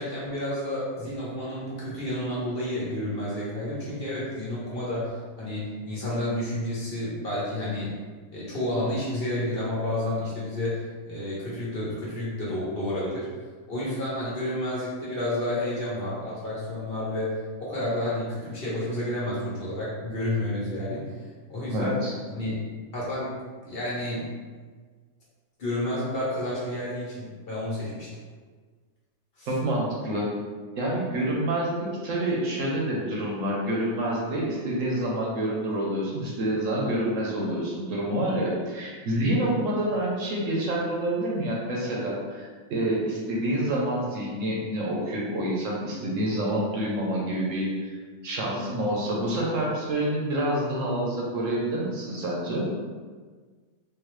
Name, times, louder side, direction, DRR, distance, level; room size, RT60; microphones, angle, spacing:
voice 1, 0.0-8.0 8.3-13.3 13.7-21.1 21.5-22.0 22.4-22.5 22.9-23.4 23.6-24.3 25.6-28.1 29.4-29.5 48.8-48.9, left 1 dB, 45° left, -7 dB, 1.0 m, -30 dB
voice 2, 21.7-22.1 29.5-30.2 30.8-48.0 48.2-52.7, right 1 dB, 65° right, -3 dB, 1.1 m, -27 dB
3.8 x 2.8 x 3.1 m, 1.5 s
omnidirectional pair, 1.5 m